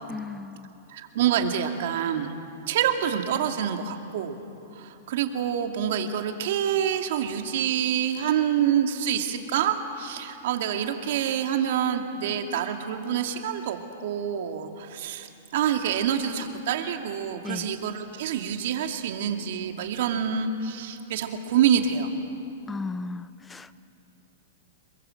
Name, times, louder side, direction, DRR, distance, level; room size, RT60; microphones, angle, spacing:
voice 1, 0.1-0.8 17.4-17.7 22.7-23.7, left 3 dB, 10° left, 15 dB, 0.5 m, -36 dB
voice 2, 0.9-2.3 2.7-4.4 4.7-22.1, right 9 dB, 60° right, 4 dB, 2.5 m, -27 dB
27.5 x 23.0 x 7.9 m, 2.8 s
hypercardioid pair, 135°, 0 cm